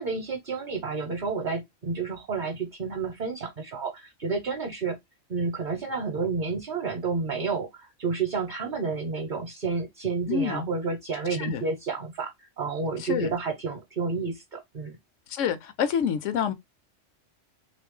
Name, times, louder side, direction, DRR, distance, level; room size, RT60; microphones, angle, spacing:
voice 1, 0.0-5.0 5.3-15.0, right 4 dB, 45° right, 0.9 m, -30 dB
voice 2, 10.3-10.6 11.3-11.6 13.0-13.3 15.3-16.5, left 8 dB, 80° left, 1.0 m, -28 dB
3.3 x 2.6 x 3.6 m
omnidirectional pair, 1.3 m